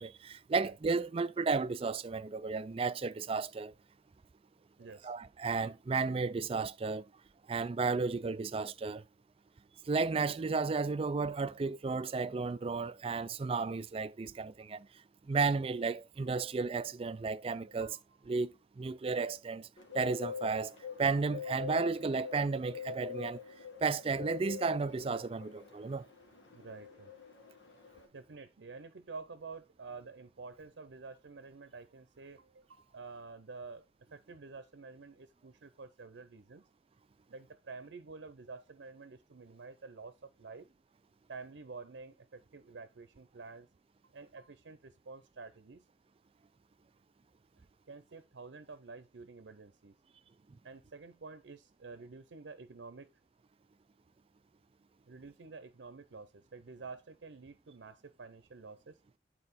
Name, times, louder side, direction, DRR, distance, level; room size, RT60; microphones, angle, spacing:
voice 1, 0.0-3.7 5.0-7.0 7.5-9.0 9.9-14.9 15.3-18.0 18.3-19.7 19.9-23.4 23.8-26.1, right 4 dB, 30° right, 0.4 m, -33 dB
voice 2, 4.8-5.1 17.5-18.0 26.5-27.1 28.1-33.9 34.1-36.6 37.3-40.7 41.3-43.7 44.0-45.8 47.6-50.0 50.6-53.1 55.1-59.0, right 4 dB, 80° right, 0.6 m, -49 dB
Bird, 19.8-28.1, left 7 dB, 90° left, 1.8 m, -45 dB
8.9 x 4.4 x 4.2 m
head